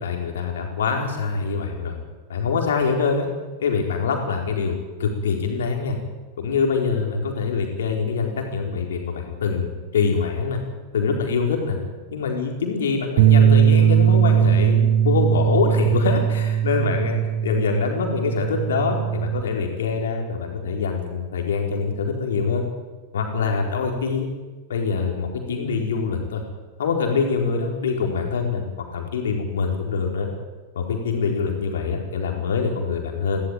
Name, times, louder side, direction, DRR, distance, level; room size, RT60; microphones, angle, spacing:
voice 1, 0.0-2.0 2.3-3.3 3.6-6.0 6.4-10.6 10.9-11.8 12.1-22.6 23.1-24.3 24.7-26.4 26.8-28.6 28.9-30.3 30.7-33.4, left 5 dB, 65° left, 2 dB, 4.4 m, -24 dB
Bass guitar, 13.2-19.4, right 9 dB, 50° right, 1.2 m, -19 dB
18.5 x 17.0 x 9.2 m, 1.3 s
figure-of-eight pair, 90°, 0 cm